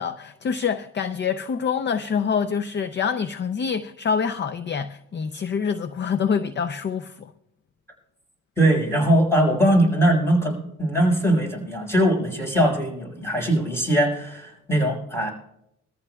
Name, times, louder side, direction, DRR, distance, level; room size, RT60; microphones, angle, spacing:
voice 1, 0.0-7.3, left 6 dB, 35° left, 0.6 m, -26 dB
voice 2, 8.6-15.3, right 1 dB, 10° left, 5.7 m, -21 dB
23.0 x 14.0 x 2.3 m
cardioid pair, 90°, 30 cm